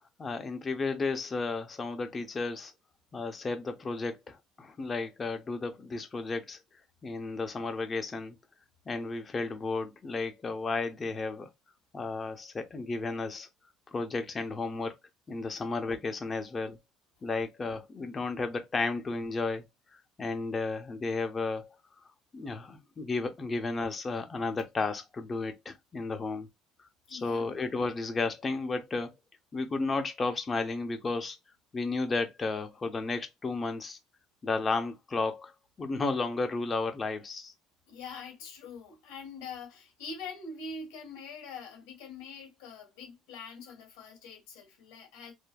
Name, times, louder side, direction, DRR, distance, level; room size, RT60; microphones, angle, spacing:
voice 1, 0.2-2.7 3.1-6.6 7.0-8.4 8.9-11.5 11.9-13.5 13.9-14.9 15.3-16.8 17.2-19.6 20.2-21.7 22.3-26.5 27.1-29.1 29.5-31.4 31.7-34.0 34.4-35.5 35.8-37.5, left 3 dB, 30° left, 0.7 m, -33 dB
voice 2, 27.1-27.5 37.9-45.3, left 4 dB, 90° left, 1.5 m, -44 dB
3.3 x 2.0 x 2.3 m
supercardioid pair, 95°, 0 cm